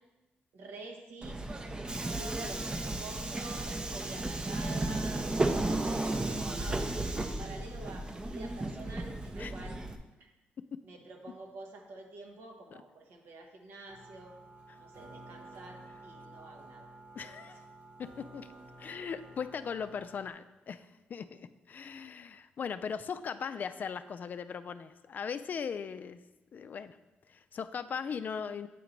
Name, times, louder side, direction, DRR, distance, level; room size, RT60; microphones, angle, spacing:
voice 1, 0.5-1.4 1.9-9.8 10.2-10.3 10.8-14.3 14.8-16.9 17.2-17.5, right 2 dB, 85° right, 2 dB, 1.1 m, -48 dB
Subway metro underground, 1.2-10.0, right 2 dB, 25° right, 0.5 m, -34 dB
sound 1, 13.9-20.3, right 2 dB, 55° right, 1.3 m, -52 dB
voice 2, 17.2-17.6 18.0-18.5 18.8-26.2 26.5-27.0 27.3-28.7, left 6 dB, 50° left, 11 dB, 0.3 m, -39 dB
8.4 x 3.0 x 5.1 m, 1.1 s
cardioid pair, 95°, 4 cm